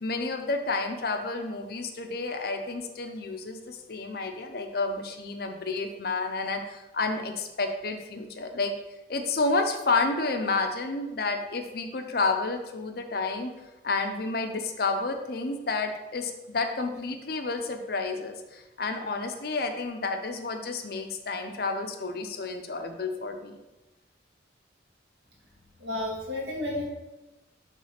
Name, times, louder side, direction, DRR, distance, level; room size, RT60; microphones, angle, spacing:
voice 1, 0.0-8.7 9.1-13.5 13.8-23.6, left 3 dB, 50° left, 6 dB, 0.6 m, -30 dB
voice 2, 25.8-26.8, left 1 dB, 60° right, -4 dB, 2.0 m, -31 dB
6.4 x 3.3 x 5.7 m, 1.0 s
head